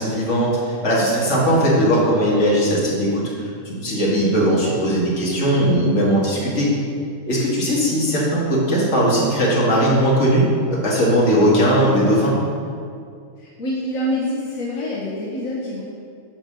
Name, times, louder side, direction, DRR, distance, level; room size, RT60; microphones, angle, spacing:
voice 1, 0.0-3.2 3.7-6.7 7.3-12.3, equal, 60° left, -5 dB, 2.2 m, -18 dB
voice 2, 13.4-15.8, left 1 dB, 85° left, -5 dB, 1.5 m, -26 dB
9.8 x 4.2 x 6.1 m, 2.3 s
omnidirectional pair, 1.4 m